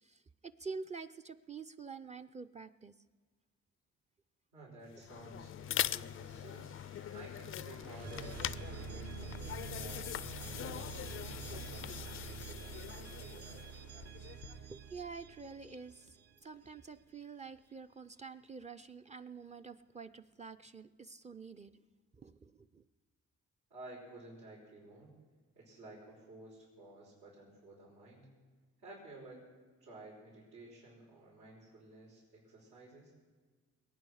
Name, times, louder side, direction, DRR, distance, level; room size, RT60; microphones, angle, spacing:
voice 1, 0.0-2.9 14.3-21.8 22.2-22.8, right 5 dB, 25° right, 8 dB, 0.5 m, -48 dB
voice 2, 4.5-6.7 7.1-13.8 23.7-25.1 25.5-28.3 28.8-29.4 29.8-33.1, right 2 dB, 85° right, -8 dB, 5.4 m, -54 dB
sound 1, 4.9-14.8, left 11 dB, 45° left, 0.4 m, -42 dB
sound 2, 5.9-16.7, right 8 dB, 55° right, 0.8 m, -48 dB
21.5 x 9.2 x 6.4 m, 1.4 s
cardioid pair, 90°, 30 cm